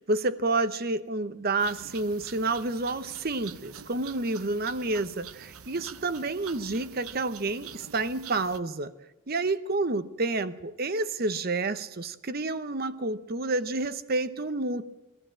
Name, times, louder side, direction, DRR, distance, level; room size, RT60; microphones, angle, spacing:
voice 1, 0.0-8.9 9.3-14.9, right 2 dB, 45° right, 0.8 m, -29 dB
sound 1, 1.6-8.6, right 8 dB, 80° right, 0.8 m, -46 dB
22.5 x 14.5 x 8.9 m
head